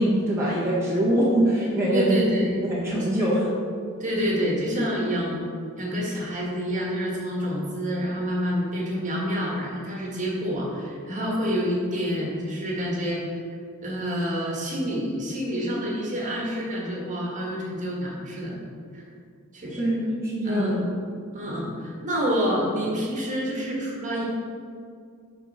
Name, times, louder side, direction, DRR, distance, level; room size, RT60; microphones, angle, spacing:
voice 1, 0.0-2.3 2.6-3.5 19.8-20.8, right 1 dB, 10° right, -8 dB, 1.4 m, -23 dB
voice 2, 1.9-2.5 4.0-5.4 5.8-13.4 13.8-18.5 18.9-19.0 19.5-19.9 20.4-20.9 21.3-24.2, equal, 35° right, -3 dB, 1.7 m, -28 dB
8.2 x 5.4 x 4.2 m, 2.3 s
head